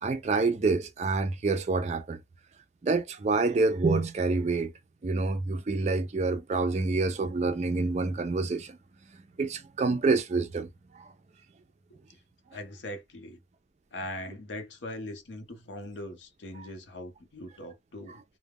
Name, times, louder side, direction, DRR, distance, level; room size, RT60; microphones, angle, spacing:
voice 1, 0.0-2.2 2.8-4.7 5.0-8.8 9.4-11.1, right 3 dB, 40° right, 0.3 m, -27 dB
voice 2, 12.5-13.4 13.9-18.2, left 1 dB, 85° left, 0.7 m, -41 dB
2.3 x 2.1 x 3.4 m
head